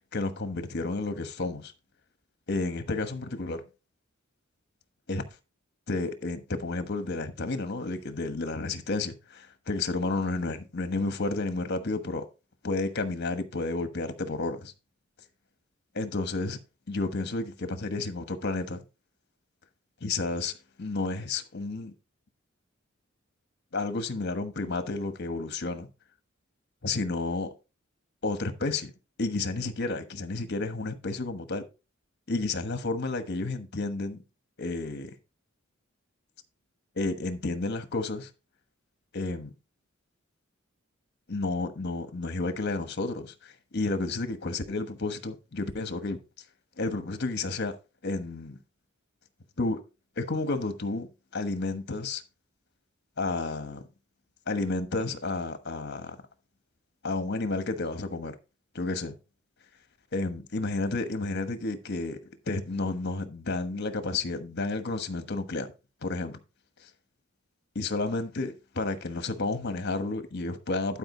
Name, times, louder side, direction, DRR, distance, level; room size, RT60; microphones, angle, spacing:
voice 1, 0.1-1.7 2.5-3.6 5.1-5.2 5.9-12.2 12.6-14.7 15.9-16.6 16.9-18.8 20.0-20.5 20.8-21.9 23.7-25.9 26.8-27.5 28.2-28.9 29.2-31.6 32.3-34.2 34.6-35.1 37.0-38.3 39.1-39.5 41.3-46.2 46.8-47.7 48.0-48.6 49.6-49.8 50.2-51.1 51.3-52.2 53.2-53.8 54.5-56.2 57.0-58.4 58.7-59.2 60.1-62.2 62.5-65.7 66.0-66.4 67.7-71.0, left 3 dB, 55° left, 1.2 m, -31 dB
11.5 x 5.1 x 3.8 m
head